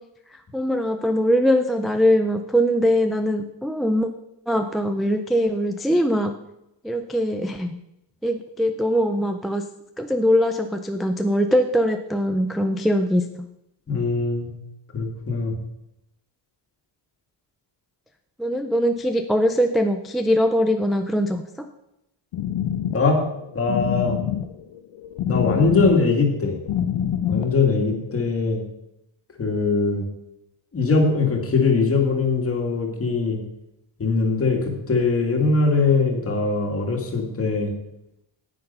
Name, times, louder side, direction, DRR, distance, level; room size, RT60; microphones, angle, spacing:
voice 1, 0.5-4.1 4.5-6.3 6.8-7.8 8.2-9.6 10.0-13.5 18.4-21.7, equal, ahead, 5 dB, 0.3 m, -22 dB
voice 2, 13.9-14.5 14.9-15.5 22.9-23.2 23.5-24.2 25.3-26.6 27.3-28.6 29.4-30.1 30.7-33.4 34.0-37.7, left 4 dB, 30° left, 2 dB, 2.1 m, -21 dB
sound 1, 22.3-28.1, left 9 dB, 70° left, 0.8 m, -27 dB
9.7 x 8.9 x 5.5 m, 0.86 s
cardioid pair, 160°, 48 cm